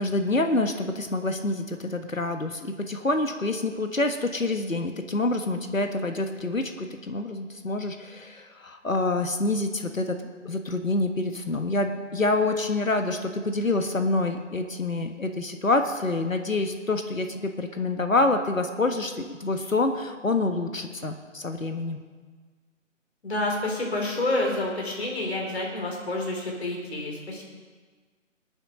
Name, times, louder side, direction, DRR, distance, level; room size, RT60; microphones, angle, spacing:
voice 1, 0.0-10.2 10.4-22.0, left 2 dB, 80° left, 6 dB, 1.5 m, -27 dB
voice 2, 23.2-27.4, left 2 dB, 50° left, 0 dB, 4.1 m, -28 dB
21.0 x 8.9 x 5.3 m, 1.5 s
figure-of-eight pair, 150°, 39 cm